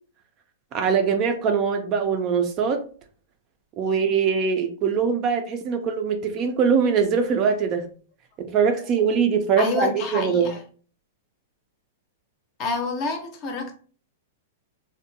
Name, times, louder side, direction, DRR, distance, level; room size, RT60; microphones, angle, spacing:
voice 1, 0.7-2.8 3.8-7.9 8.5-10.5, right 6 dB, 30° right, 0.3 m, -22 dB
voice 2, 9.6-10.6 12.6-13.7, left 3 dB, 30° left, 0.6 m, -28 dB
2.6 x 2.1 x 2.6 m
hypercardioid pair, 155°, 0 cm